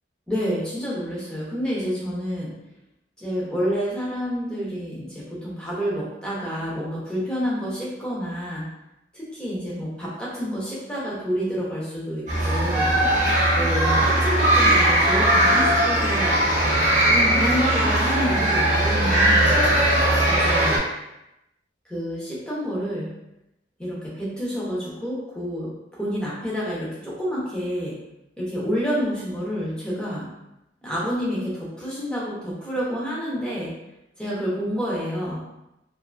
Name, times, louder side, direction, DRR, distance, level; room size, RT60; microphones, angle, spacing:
voice 1, 0.3-2.6 3.2-8.7 9.1-12.9 13.5-16.4 17.1-19.5 20.3-20.8 21.9-23.1 23.8-28.0 28.4-30.3 30.8-33.7 34.2-35.4, equal, 5° left, -7 dB, 0.6 m, -28 dB
sound 1, 12.3-20.8, right 1 dB, 40° right, 0.6 m, -19 dB
2.6 x 2.5 x 2.3 m, 0.89 s
head